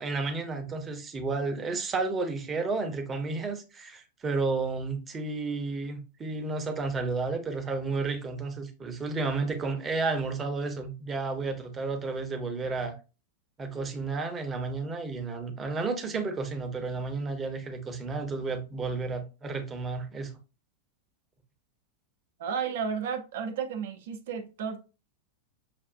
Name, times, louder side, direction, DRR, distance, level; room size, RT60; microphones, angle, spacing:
voice 1, 0.0-13.0 13.6-20.3, right 3 dB, 20° right, 0.8 m, -32 dB
voice 2, 22.4-24.8, right 6 dB, 55° right, 0.7 m, -33 dB
6.0 x 2.4 x 2.5 m
figure-of-eight pair, 90°, 0 cm